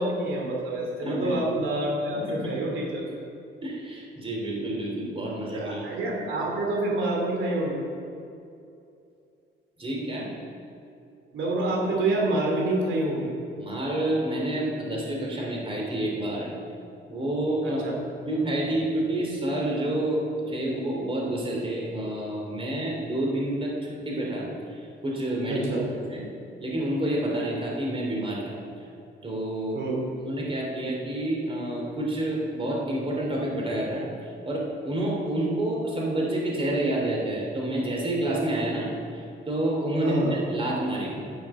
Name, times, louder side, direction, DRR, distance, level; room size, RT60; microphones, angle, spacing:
voice 1, 0.0-3.0 5.5-7.8 11.3-13.3 17.6-18.0 25.5-25.8 29.7-30.0 40.0-40.4, right 2 dB, 75° right, -2 dB, 2.7 m, -27 dB
voice 2, 1.0-1.4 2.1-2.6 3.6-5.8 9.8-10.3 13.6-16.5 17.1-17.8 18.3-25.8 26.1-26.2 26.6-28.6 29.2-29.8 30.2-34.1 34.4-41.3, right 1 dB, 25° right, -2 dB, 2.8 m, -29 dB
10.5 x 6.3 x 7.1 m, 2.6 s
cardioid pair, 90°, 20 cm